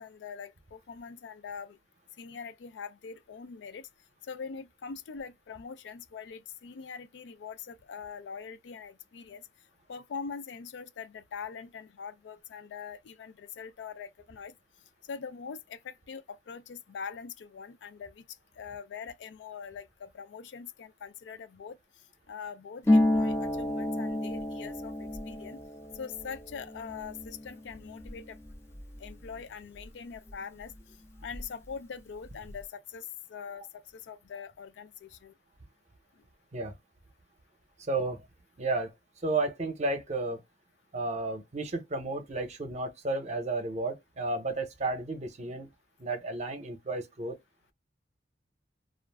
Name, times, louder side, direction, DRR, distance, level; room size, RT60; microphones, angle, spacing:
voice 1, 0.0-1.8 2.2-3.9 4.2-9.5 9.9-14.5 15.1-18.2 18.6-21.8 22.3-25.6 25.9-28.4 29.0-30.7 31.2-35.3 37.9-38.1, left 6 dB, 85° left, 0.4 m, -43 dB
Harp, 22.8-30.3 30.6-31.7 32.0-32.6, left 1 dB, 15° left, 0.4 m, -31 dB
voice 2, 37.8-38.3 38.6-38.9 39.2-40.4 40.9-45.7 46.0-47.4, right 2 dB, 40° right, 0.7 m, -32 dB
2.4 x 2.1 x 3.3 m
head